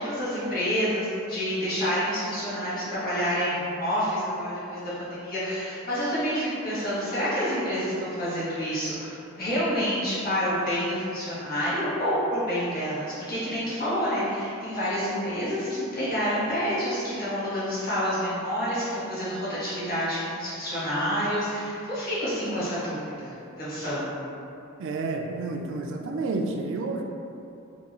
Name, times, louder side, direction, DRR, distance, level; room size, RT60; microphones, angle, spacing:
voice 1, 0.0-24.2, equal, 45° left, -11 dB, 1.3 m, -28 dB
voice 2, 24.8-27.0, right 3 dB, 60° right, 3 dB, 0.3 m, -30 dB
3.5 x 2.3 x 3.0 m, 2.7 s
head